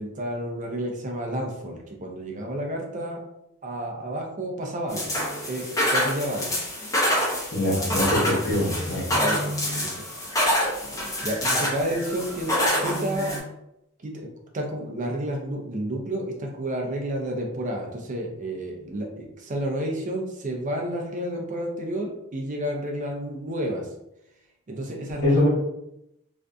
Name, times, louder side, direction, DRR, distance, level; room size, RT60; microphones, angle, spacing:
voice 1, 0.0-3.2 3.6-5.1 5.5-6.5 7.7-8.0 9.1-10.0 11.2-13.4 14.0-14.3 14.5-23.9 24.7-25.5, right 1 dB, 35° right, 1 dB, 0.5 m, -31 dB
sound 1, 4.9-13.4, equal, 15° left, 0.6 m, -26 dB
voice 2, 7.5-9.1 25.2-25.5, left 1 dB, 55° left, -7 dB, 1.0 m, -23 dB
2.5 x 2.5 x 2.2 m, 0.83 s
head